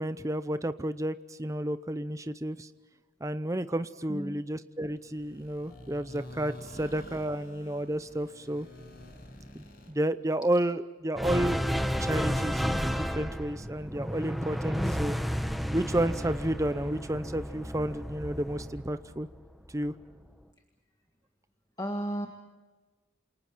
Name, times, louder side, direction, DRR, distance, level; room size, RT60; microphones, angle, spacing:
voice 1, 0.0-2.7 3.2-8.7 9.5-11.6 12.0-15.2 15.7-19.3 19.7-19.9, right 1 dB, 15° right, 11 dB, 0.7 m, -31 dB
voice 2, 4.1-4.4 5.7-5.8 14.8-15.1 21.8-22.3, equal, 20° left, 2 dB, 1.8 m, -35 dB
sound 1, 4.9-9.9, left 1 dB, 50° left, 7.2 m, -48 dB
sound 2, 11.2-19.7, equal, ahead, 1.0 m, -32 dB
29.0 x 28.0 x 4.6 m, 1.3 s
head